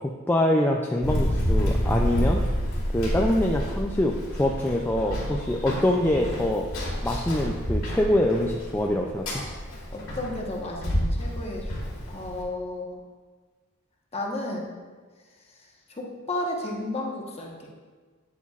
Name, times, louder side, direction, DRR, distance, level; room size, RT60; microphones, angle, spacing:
voice 1, 0.0-2.4 2.9-6.7 7.0-9.4, left 1 dB, 10° left, 0 dB, 0.3 m, -24 dB
Run, 1.0-12.4, equal, 85° left, 2.3 m, -29 dB
voice 2, 9.9-11.6 12.1-13.0 14.1-14.7 16.0-17.5, left 1 dB, 30° left, -1 dB, 1.1 m, -32 dB
9.2 x 8.2 x 2.4 m, 1.4 s
head